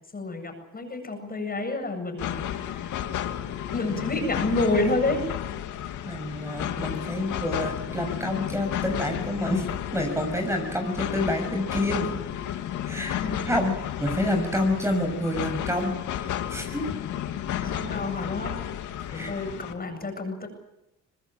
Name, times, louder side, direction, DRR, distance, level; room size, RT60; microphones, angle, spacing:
voice 1, 0.1-3.0 3.7-5.2 13.2-13.5 17.6-18.5 19.1-20.5, left 2 dB, 30° left, 5 dB, 8.0 m, -29 dB
sound 1, 2.2-19.7, left 10 dB, 80° left, 2.3 m, -32 dB
voice 2, 6.0-9.6 9.9-12.2 12.8-13.2 13.4-13.7 14.0-16.8 19.1-19.3, left 1 dB, 10° right, 4 dB, 6.4 m, -28 dB
24.5 x 20.0 x 8.9 m, 0.85 s
cardioid pair, 90°, 30 cm